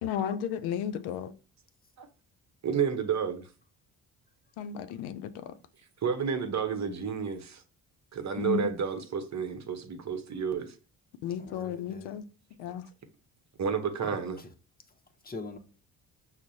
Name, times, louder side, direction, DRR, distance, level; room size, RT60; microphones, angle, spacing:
voice 1, 0.0-1.3 4.6-5.5 8.4-8.7 11.2-12.2 12.6-12.9, left 9 dB, 75° left, 0.5 m, -33 dB
voice 2, 2.6-3.5 6.0-7.6 8.1-10.7 13.6-14.4, right 7 dB, 40° right, 0.8 m, -31 dB
voice 3, 11.4-12.2 14.0-14.5 14.9-15.0 15.2-15.6, left 3 dB, 20° left, 0.8 m, -43 dB
6.0 x 2.1 x 2.7 m
hypercardioid pair, 55°, 41 cm